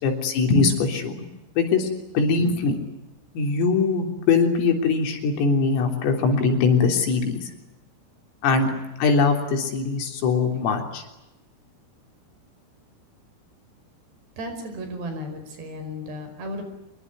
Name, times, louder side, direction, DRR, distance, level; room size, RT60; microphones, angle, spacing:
voice 1, 0.0-1.3 1.6-1.9 2.1-2.8 3.4-7.4 8.4-8.7 9.0-11.0, left 4 dB, 80° left, 4 dB, 6.1 m, -21 dB
voice 2, 14.4-16.6, equal, 55° right, 7 dB, 7.0 m, -34 dB
26.0 x 23.0 x 9.6 m, 0.95 s
omnidirectional pair, 5.9 m